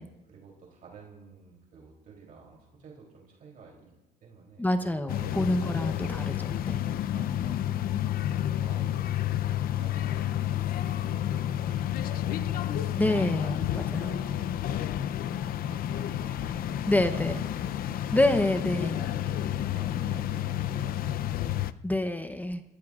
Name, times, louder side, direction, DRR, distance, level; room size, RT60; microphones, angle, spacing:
voice 1, 0.0-3.9 4.2-5.6 6.3-6.8 7.1-8.2 8.6-12.9 13.6-14.4 14.8-18.0 18.5-21.5, right 5 dB, 55° right, -1 dB, 3.1 m, -51 dB
voice 2, 4.6-6.3 6.7-6.8 13.0-14.0 16.9-17.4 18.1-18.9 21.8-22.6, left 1 dB, 10° left, 9 dB, 0.8 m, -27 dB
sound 1, 5.1-21.7, left 11 dB, 60° left, 0.5 m, -30 dB
27.5 x 15.0 x 2.4 m, 1.0 s
cardioid pair, 110°, 17 cm